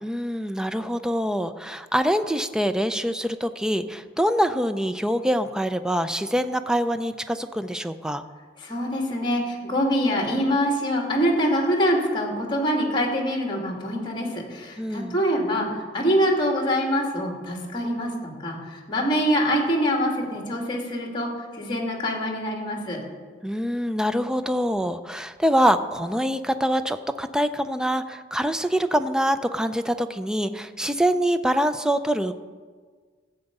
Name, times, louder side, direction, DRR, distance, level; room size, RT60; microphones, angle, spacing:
voice 1, 0.0-8.2 14.8-15.2 23.4-32.4, equal, 5° right, 11 dB, 0.5 m, -25 dB
voice 2, 8.6-23.0, equal, 25° left, 0 dB, 2.6 m, -25 dB
14.5 x 8.0 x 5.4 m, 1.5 s
head